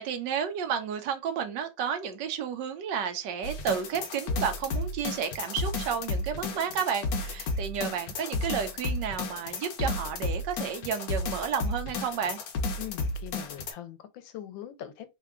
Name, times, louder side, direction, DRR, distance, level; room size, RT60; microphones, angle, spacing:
voice 1, 0.0-12.4, right 7 dB, 75° right, 1.2 m, -32 dB
sound 1, 3.4-13.7, left 3 dB, 65° left, 1.1 m, -32 dB
voice 2, 12.8-15.2, left 11 dB, 85° left, 1.3 m, -42 dB
3.7 x 2.2 x 3.5 m
omnidirectional pair, 2.1 m